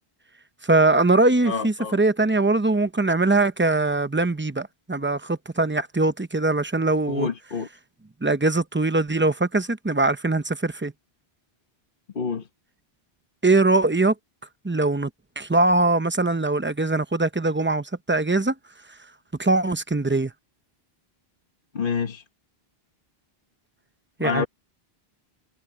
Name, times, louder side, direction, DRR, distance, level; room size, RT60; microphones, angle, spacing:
voice 1, 0.6-7.3 8.2-10.9 13.4-14.1 14.6-15.1 15.4-18.5 19.4-20.3 24.2-24.4, right 2 dB, 15° right, 0.6 m, -22 dB
voice 2, 1.4-2.0 7.1-7.7 12.1-12.5 21.7-22.2 24.2-24.5, left 5 dB, 55° left, 1.4 m, -27 dB
omnidirectional pair, 1.1 m